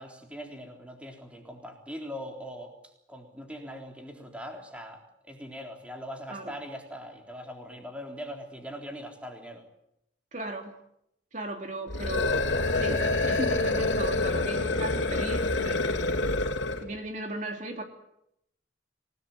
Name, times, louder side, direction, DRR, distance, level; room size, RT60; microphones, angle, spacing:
voice 1, 0.0-2.7 3.1-5.0 5.3-9.6, equal, 5° right, 2 dB, 3.8 m, -41 dB
voice 2, 10.3-10.7 11.3-12.5 12.7-15.8 16.8-17.8, right 2 dB, 40° right, 3 dB, 2.9 m, -36 dB
sound 1, 11.9-16.9, left 2 dB, 75° left, 2.9 m, -27 dB
28.0 x 18.5 x 9.2 m, 0.79 s
head